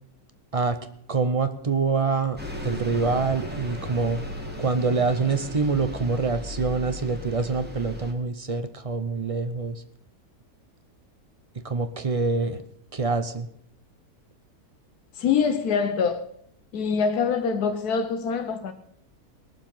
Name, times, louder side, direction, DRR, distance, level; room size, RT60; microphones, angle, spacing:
voice 1, 1.1-2.4 2.6-4.2 4.6-9.8 11.6-12.6 12.9-13.5, right 4 dB, 40° right, 0.5 m, -25 dB
Bus, 2.4-8.1, left 1 dB, 5° right, 1.7 m, -36 dB
voice 2, 15.1-16.3 16.7-18.7, left 6 dB, 80° left, 1.4 m, -24 dB
20.0 x 7.3 x 5.5 m
omnidirectional pair, 1.6 m